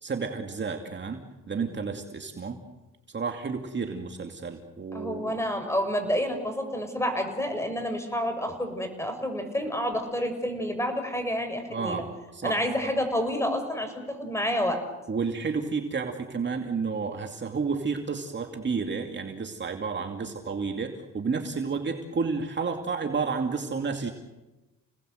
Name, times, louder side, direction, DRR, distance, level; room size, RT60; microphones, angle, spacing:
voice 1, 0.0-2.6 3.1-5.4 11.7-12.1 12.3-12.6 15.1-24.1, right 5 dB, 35° right, 4 dB, 2.5 m, -31 dB
voice 2, 4.9-12.0 12.4-14.8, equal, 10° left, 6 dB, 6.1 m, -29 dB
30.0 x 19.0 x 8.0 m, 1.1 s
cardioid pair, 90°, 30 cm